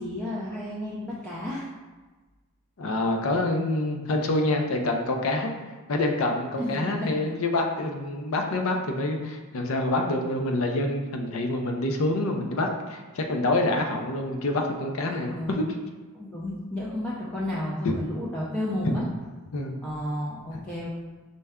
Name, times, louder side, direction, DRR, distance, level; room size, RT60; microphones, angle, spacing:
voice 1, 0.0-1.7 6.6-7.2 15.1-15.6 16.1-19.0 19.8-20.9, left 1 dB, 5° left, -7 dB, 0.4 m, -32 dB
voice 2, 2.8-5.5 5.9-15.8 17.8-17.9 19.5-19.8, left 2 dB, 65° left, 3 dB, 0.5 m, -26 dB
5.3 x 2.2 x 3.5 m, 1.3 s
head